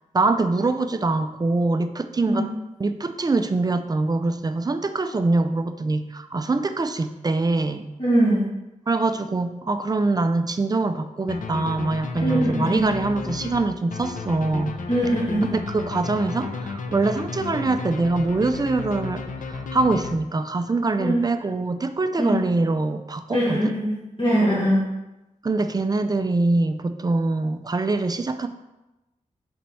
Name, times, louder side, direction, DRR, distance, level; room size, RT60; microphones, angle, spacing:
voice 1, 0.1-2.5 2.8-7.9 8.9-14.8 15.5-23.7 25.4-28.5, right 3 dB, 30° right, 9 dB, 0.4 m, -24 dB
voice 2, 8.0-8.4 12.2-12.9 14.9-15.5 21.0-21.2 22.2-22.4 23.3-24.8, equal, 40° left, -8 dB, 1.8 m, -22 dB
sound 1, 11.3-20.6, left 4 dB, 80° left, 0.6 m, -33 dB
4.4 x 4.3 x 5.4 m, 0.99 s
wide cardioid pair, 100°, 13 cm